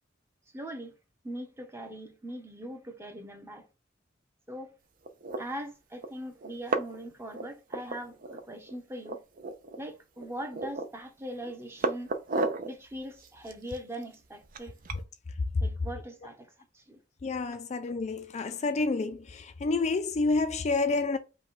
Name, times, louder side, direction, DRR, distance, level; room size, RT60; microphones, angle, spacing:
voice 1, 0.5-1.0 1.2-3.7 4.5-4.7 5.4-9.2 9.8-12.1 12.6-14.8 15.6-16.5 16.7-17.0, right 1 dB, 15° right, 0.8 m, -41 dB
sound 1, 5.1-5.4 6.0-6.1 6.4-7.1 7.3-8.4 8.7-8.8 9.0-9.8 10.2-11.0 11.4-12.7 13.2-15.0, right 3 dB, 45° right, 0.6 m, -33 dB
voice 2, 17.2-19.2 19.6-21.2, left 3 dB, 35° left, 0.4 m, -28 dB
5.3 x 2.3 x 4.0 m
head